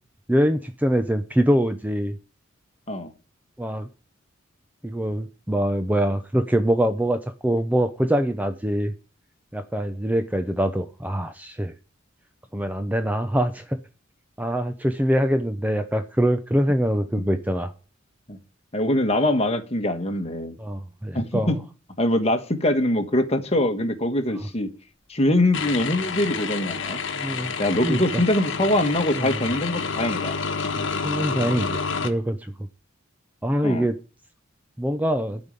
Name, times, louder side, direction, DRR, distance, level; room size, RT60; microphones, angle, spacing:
voice 1, 0.3-2.2 3.6-3.9 4.8-8.9 9.5-11.7 12.5-13.8 14.4-17.7 20.6-21.5 27.2-27.5 27.8-28.0 29.2-29.4 30.7-31.8 32.0-32.4 33.4-34.0 34.8-35.4, equal, 10° right, 9 dB, 0.6 m, -24 dB
voice 2, 18.7-20.6 21.1-21.6 22.0-24.7 25.1-27.0 27.6-30.4 33.6-33.9, left 1 dB, 30° left, 7 dB, 1.5 m, -23 dB
sound 1, 25.5-32.1, left 5 dB, 65° left, 1.2 m, -29 dB
12.0 x 5.3 x 8.9 m, 0.36 s
head